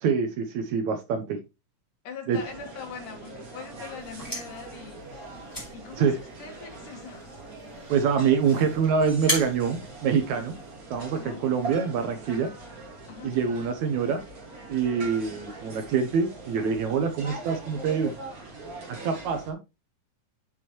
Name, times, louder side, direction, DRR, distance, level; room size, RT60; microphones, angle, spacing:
voice 1, 0.0-1.4 2.3-2.4 6.0-6.2 7.9-10.6 10.9-12.5 13.2-14.2 14.7-18.1 18.9-19.6, right 6 dB, 70° right, 2.0 m, -25 dB
voice 2, 2.0-5.0 5.7-7.4 11.1-11.5 13.1-13.4, left 6 dB, 70° left, 3.1 m, -42 dB
sound 1, 2.3-19.5, right 3 dB, 35° right, 1.7 m, -42 dB
sound 2, 3.9-10.8, equal, 5° left, 3.8 m, -37 dB
7.2 x 6.4 x 3.0 m
omnidirectional pair, 3.9 m